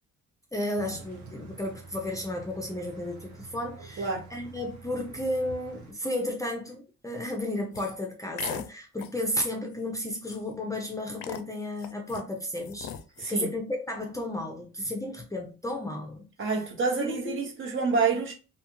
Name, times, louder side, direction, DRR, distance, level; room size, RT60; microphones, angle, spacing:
voice 1, 0.5-12.9 13.3-16.3 17.0-17.5, left 1 dB, 10° left, 0.5 m, -33 dB
sound 1, 0.7-5.9, right 4 dB, 70° right, 0.9 m, -47 dB
sound 2, 7.7-7.9 8.4-8.7 9.0-9.2 9.7-9.8 10.1-10.6 11.2-12.2 12.6-13.3, left 9 dB, 70° left, 0.5 m, -39 dB
voice 2, 13.2-13.5 16.4-18.3, right 4 dB, 40° right, 1.0 m, -28 dB
2.7 x 2.3 x 2.9 m
cardioid pair, 90°, 30 cm